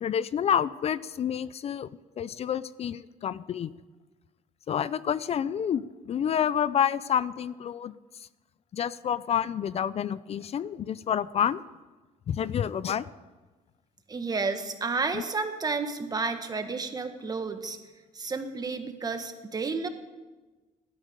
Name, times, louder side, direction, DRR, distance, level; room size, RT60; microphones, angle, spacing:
voice 1, 0.0-1.9 2.2-3.7 4.7-7.9 8.7-11.6 12.3-13.0 15.1-15.2, left 8 dB, 45° left, 17 dB, 0.5 m, -28 dB
voice 2, 14.1-17.8 18.1-19.9, right 4 dB, 25° right, 7 dB, 1.6 m, -31 dB
16.5 x 12.5 x 5.2 m, 1.2 s
cardioid pair, 105°, 15 cm